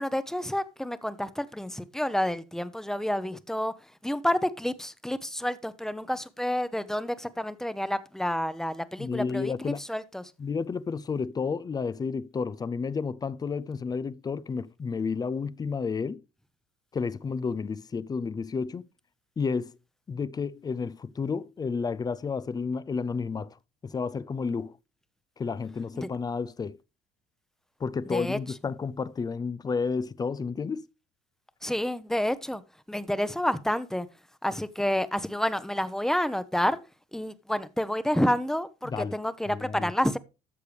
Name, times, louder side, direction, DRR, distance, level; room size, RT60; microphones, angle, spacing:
voice 1, 0.0-3.7 4.0-10.2 28.1-28.4 31.6-32.6 32.9-34.1 34.4-36.8 37.1-40.2, left 1 dB, 5° left, 0.8 m, -29 dB
voice 2, 9.0-9.8 10.4-16.2 16.9-18.9 19.4-19.8 20.1-24.8 25.4-26.8 27.8-30.9 38.8-39.2 39.5-39.9, left 5 dB, 25° left, 0.5 m, -31 dB
13.0 x 6.6 x 3.3 m
supercardioid pair, 85°, 16 cm